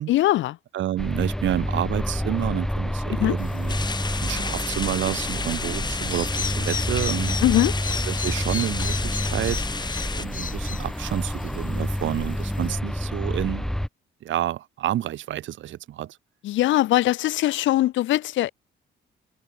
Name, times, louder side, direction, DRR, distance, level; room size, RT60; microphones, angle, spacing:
voice 1, 0.1-0.6 3.2-3.4 7.4-7.7 16.4-18.5, left 15 dB, 75° left, 0.5 m, -21 dB
voice 2, 0.7-3.8 4.2-7.4 8.1-9.7 10.2-13.7 14.2-16.2, right 12 dB, 75° right, 1.4 m, -29 dB
sound 1, 1.0-13.9, equal, ahead, 1.6 m, -28 dB
sound 2, 3.4-12.7, left 6 dB, 40° left, 2.4 m, -37 dB
sound 3, 3.7-10.3, left 4 dB, 20° left, 0.7 m, -32 dB
cardioid pair, 90°, 20 cm